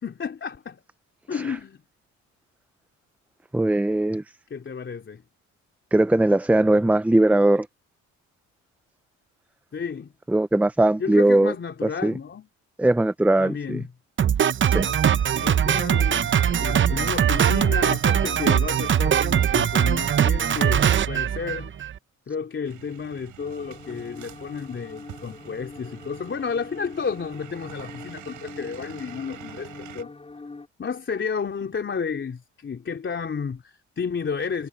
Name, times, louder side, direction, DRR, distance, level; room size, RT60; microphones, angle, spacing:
voice 1, 0.0-0.8 1.3-1.8 4.5-5.2 9.7-10.1 11.0-12.5 13.4-13.9 15.4-21.7 22.3-30.1 30.8-34.7, left 6 dB, 40° left, 3.3 m, -32 dB
voice 2, 3.5-4.2 5.9-7.7 10.3-11.5 12.0-12.1 12.8-13.8 14.7-14.9, right 1 dB, 5° right, 0.5 m, -20 dB
Drum kit, 14.2-22.0, right 9 dB, 40° right, 0.7 m, -21 dB
sound 1, 22.6-30.0, right 13 dB, 80° right, 6.9 m, -46 dB
sound 2, 23.4-30.7, left 3 dB, 20° left, 3.9 m, -43 dB
cardioid pair, 90°, 30 cm